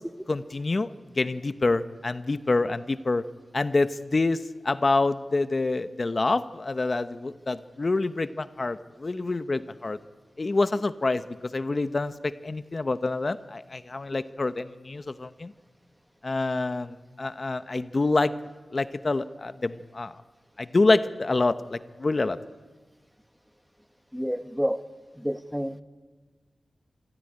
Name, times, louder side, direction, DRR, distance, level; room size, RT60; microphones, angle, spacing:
voice 1, 0.3-0.9 1.2-3.2 3.5-4.4 4.6-10.0 10.4-15.5 16.2-18.3 18.7-20.1 20.6-22.4, left 3 dB, 45° left, 12 dB, 0.8 m, -26 dB
voice 2, 24.1-24.8 25.2-25.8, equal, ahead, 11 dB, 1.1 m, -29 dB
26.0 x 14.0 x 9.9 m, 1.3 s
cardioid pair, 55°, 0 cm